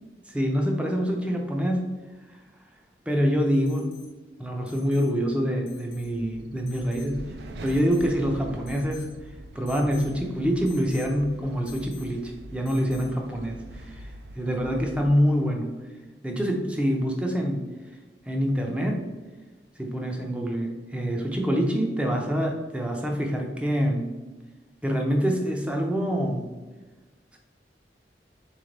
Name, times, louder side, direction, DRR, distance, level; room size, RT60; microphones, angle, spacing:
voice 1, 0.3-1.9 2.3-2.4 3.1-3.9 4.4-7.2 7.6-9.1 9.5-14.1 14.4-15.7 16.2-17.7 18.3-19.0 19.8-24.1 24.8-26.5 27.3-27.4, equal, 5° right, 1 dB, 0.5 m, -26 dB
Alarm, 3.7-4.1 4.7-5.1 5.7-6.1 6.7-7.1 7.7-8.2 8.7-9.1 9.7-10.1 10.7-11.1 11.7-12.2 12.7-13.2 14.9-15.0, left 7 dB, 80° left, 0.7 m, -50 dB
sound 1, 5.9-15.1, right 1 dB, 70° right, 0.4 m, -43 dB
3.6 x 3.3 x 3.8 m, 1.2 s
head